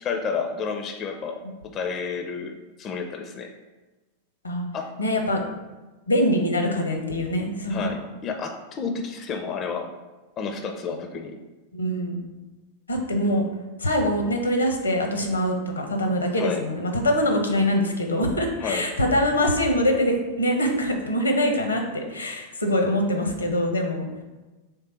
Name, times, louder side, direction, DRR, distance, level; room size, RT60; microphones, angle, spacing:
voice 1, 0.0-1.4 1.7-3.5 4.7-4.9 7.7-9.9 10.4-11.3 16.3-16.6 18.6-18.9, left 5 dB, 30° left, 5 dB, 0.4 m, -30 dB
voice 2, 5.0-5.4 6.1-7.9 11.7-12.2 12.9-13.5 13.8-24.1, equal, 80° left, 4 dB, 0.7 m, -24 dB
3.7 x 3.3 x 4.3 m, 1.2 s
figure-of-eight pair, 90°, 0 cm